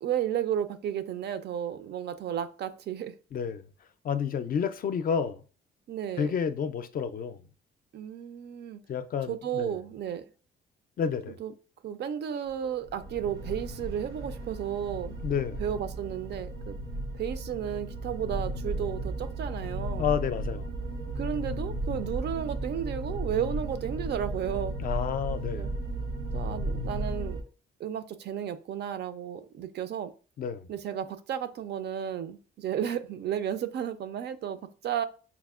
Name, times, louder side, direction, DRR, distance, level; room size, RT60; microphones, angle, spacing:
voice 1, 0.0-3.1 5.9-6.3 7.9-8.8 9.3-10.2 11.4-11.5 11.8-15.2 15.6-16.8 17.2-20.1 21.2-24.8 25.5-25.7 26.3-27.4 27.8-30.1 30.7-35.0, right 9 dB, 60° right, 0.4 m, -33 dB
voice 2, 3.3-3.7 4.0-5.4 6.2-7.4 8.9-9.8 11.0-11.4 15.2-15.6 20.0-20.7 24.8-25.7 30.4-30.7, left 7 dB, 45° left, 0.4 m, -30 dB
sound 1, 12.8-27.4, right 1 dB, 80° right, 0.8 m, -34 dB
5.7 x 2.0 x 2.3 m
cardioid pair, 90°, 20 cm